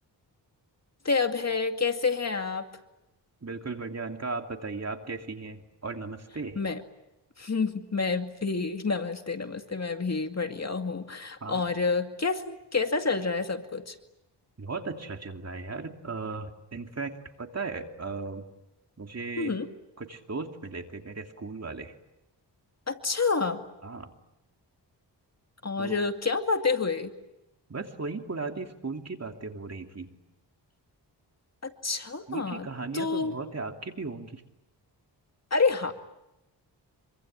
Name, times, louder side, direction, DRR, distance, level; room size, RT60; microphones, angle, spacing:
voice 1, 1.0-2.6 6.6-6.8 7.4-13.9 19.4-19.7 22.9-23.6 25.6-27.1 31.6-32.7 32.9-33.3 35.5-35.9, left 4 dB, 35° left, 6 dB, 2.2 m, -28 dB
voice 2, 3.4-6.6 11.4-11.6 14.6-18.4 19.0-19.6 20.0-21.9 23.8-24.1 25.8-26.0 27.7-30.2 32.3-34.4, right 3 dB, 35° right, 4 dB, 2.9 m, -36 dB
26.5 x 24.5 x 9.0 m, 0.92 s
cardioid pair, 80°, 42 cm